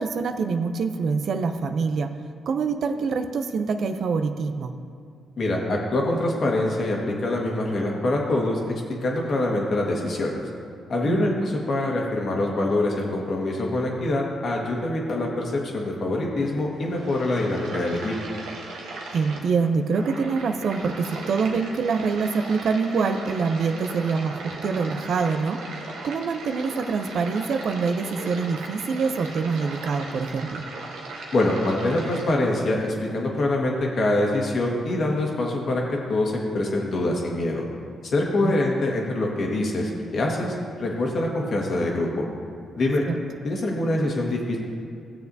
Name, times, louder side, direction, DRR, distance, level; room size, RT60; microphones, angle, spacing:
voice 1, 0.0-2.1 2.5-4.7 11.0-11.3 19.1-25.6 26.0-30.6 38.4-38.5 43.1-43.2, right 5 dB, 65° right, 8 dB, 0.5 m, -25 dB
voice 2, 5.4-10.4 10.9-18.2 31.3-37.6 38.1-42.3 42.8-43.0 43.4-44.6, left 2 dB, 60° left, -1 dB, 1.6 m, -25 dB
sound 1, 16.7-32.3, right 3 dB, 85° right, 1.1 m, -38 dB
14.5 x 6.9 x 2.7 m, 2.5 s
supercardioid pair, 55°, 0 cm